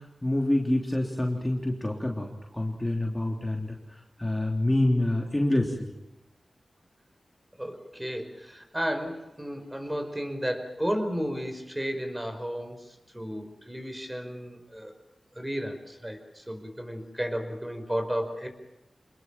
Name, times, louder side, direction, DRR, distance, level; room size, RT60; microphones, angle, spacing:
voice 1, 0.2-3.8 4.2-5.9, left 1 dB, 15° left, 0 dB, 3.4 m, -27 dB
voice 2, 7.6-14.9 15.4-18.5, equal, 10° right, 6 dB, 5.1 m, -33 dB
27.5 x 21.0 x 7.5 m, 0.90 s
wide cardioid pair, 70°, 0 cm